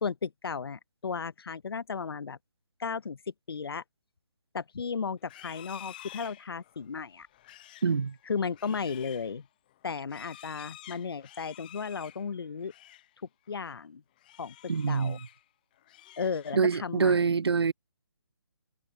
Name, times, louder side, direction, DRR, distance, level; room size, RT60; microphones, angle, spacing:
voice 1, 0.0-2.4 2.8-3.8 4.5-7.3 8.3-9.5 9.8-12.7 13.5-14.0 14.4-14.6 14.9-15.2 16.2-17.4, left 5 dB, 70° left, 0.6 m, -35 dB
Livestock farm animals working animals, 5.2-13.1 13.5-13.8 14.2-15.4 15.8-16.8, left 14 dB, 20° left, 0.6 m, -51 dB
voice 2, 7.8-8.2 14.7-15.2 16.5-17.7, right 5 dB, 85° right, 0.5 m, -25 dB
figure-of-eight pair, 160°, 13 cm